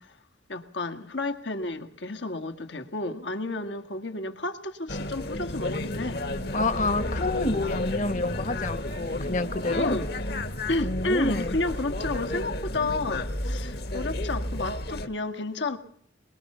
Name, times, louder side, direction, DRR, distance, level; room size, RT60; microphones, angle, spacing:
voice 1, 0.5-6.3 9.7-10.1 10.7-15.8, left 2 dB, 80° left, 1.9 m, -31 dB
sound 1, 4.9-15.1, left 1 dB, 55° left, 1.7 m, -32 dB
voice 2, 6.5-10.0 10.8-11.5, left 2 dB, 40° left, 1.3 m, -28 dB
23.0 x 21.5 x 5.6 m
head